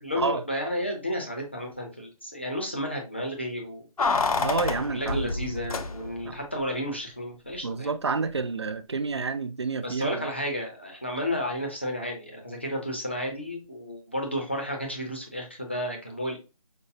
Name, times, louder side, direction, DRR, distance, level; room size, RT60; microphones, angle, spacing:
voice 1, 0.0-4.5 4.8-7.9 9.8-16.4, equal, 20° left, 0.5 m, -32 dB
Keys jangling, 4.0-6.3 6.6-6.7, left 4 dB, 75° left, 0.6 m, -28 dB
voice 2, 4.4-5.3 6.2-6.4 7.6-10.3, right 4 dB, 50° right, 0.4 m, -29 dB
5.2 x 2.0 x 2.6 m
figure-of-eight pair, 175°, 19 cm